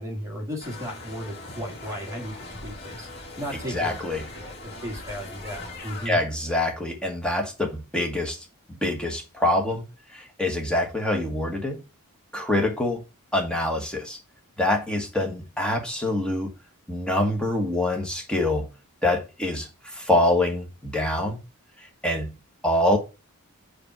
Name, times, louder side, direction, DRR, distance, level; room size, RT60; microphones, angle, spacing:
voice 1, 0.0-2.3 2.6-3.1 3.4-3.9 4.3-6.2, equal, 15° right, 2.0 m, -35 dB
sound 1, 0.6-6.1, left 2 dB, 50° left, 3.0 m, -40 dB
voice 2, 3.5-4.3 6.0-9.8 10.1-11.8 12.3-13.0 13.3-14.2 14.6-16.5 16.9-18.7 19.0-21.4 21.8-22.4 22.6-23.0, left 1 dB, 5° left, 1.4 m, -25 dB
5.1 x 4.3 x 5.8 m
head